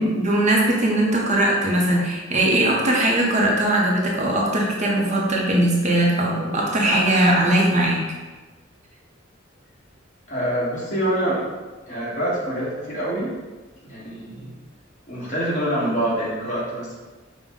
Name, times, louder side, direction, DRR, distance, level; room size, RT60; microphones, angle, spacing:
voice 1, 0.0-8.0, right 1 dB, 35° right, -2 dB, 0.6 m, -20 dB
voice 2, 10.3-11.4 11.9-13.3 13.8-14.5 15.1-16.9, right 1 dB, 40° left, -7 dB, 1.3 m, -25 dB
5.1 x 2.1 x 3.5 m, 1.3 s
head